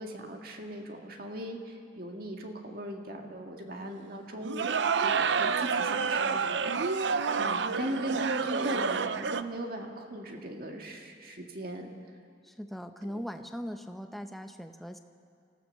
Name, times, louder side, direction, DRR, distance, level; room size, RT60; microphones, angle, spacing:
voice 1, 0.0-11.9 13.0-13.2, right 1 dB, 55° right, 2 dB, 2.0 m, -39 dB
sound 1, 4.4-9.4, right 5 dB, 75° right, 0.6 m, -28 dB
voice 2, 12.4-15.0, equal, ahead, 6 dB, 0.8 m, -40 dB
26.5 x 15.5 x 6.6 m, 2.3 s
head